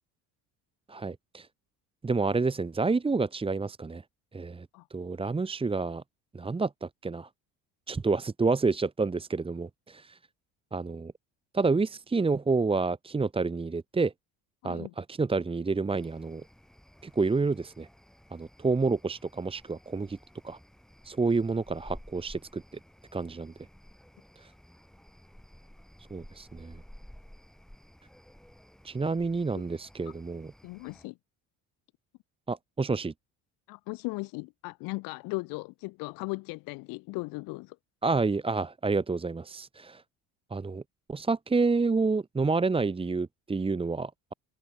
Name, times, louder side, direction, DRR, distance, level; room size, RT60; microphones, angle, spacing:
voice 1, 0.9-1.5 2.0-4.0 4.3-6.0 6.3-7.3 7.9-10.2 10.7-11.1 11.5-14.1 14.6-16.4 17.0-17.9 18.3-20.2 20.4-20.6 21.0-22.6 23.1-23.5 24.4-24.5 26.1-26.8 28.8-30.5 32.5-33.1 38.0-40.0 40.5-40.8 41.1-44.3, right 4 dB, 15° right, 1.7 m, -29 dB
voice 2, 14.6-14.9 29.5-29.6 30.6-31.2 33.7-37.8, left 25 dB, 75° left, 1.5 m, -37 dB
sound 1, 15.9-31.1, equal, ahead, 5.7 m, -54 dB
cardioid pair, 115°, 34 cm